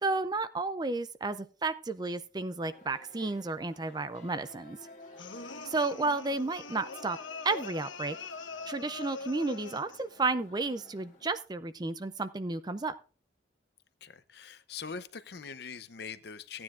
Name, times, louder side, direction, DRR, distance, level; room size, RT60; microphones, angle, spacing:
voice 1, 0.0-4.8 5.6-7.2 7.4-8.2 8.7-12.9, right 3 dB, 20° right, 12 dB, 0.4 m, -32 dB
sound 1, 2.7-11.4, left 1 dB, 35° left, 1.7 m, -54 dB
sound 2, 5.2-10.1, left 4 dB, 90° left, 1.1 m, -43 dB
voice 2, 14.0-16.6, left 5 dB, 55° left, 13 dB, 0.7 m, -43 dB
16.0 x 9.6 x 2.5 m, 0.35 s
head